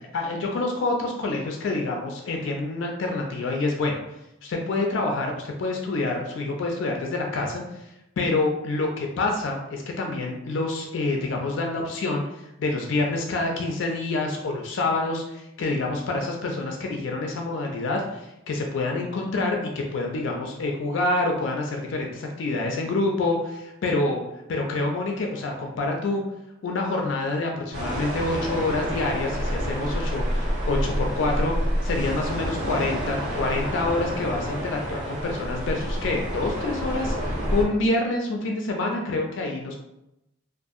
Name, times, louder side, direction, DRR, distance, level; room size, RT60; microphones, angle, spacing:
voice 1, 0.1-4.0 4.4-7.9 8.2-24.2 24.5-26.2 26.6-31.5 31.8-39.7, left 2 dB, 65° left, 1 dB, 0.3 m, -27 dB
sound 1, 27.7-37.6, equal, 85° right, 1.2 m, -28 dB
2.6 x 2.4 x 2.4 m, 0.88 s
head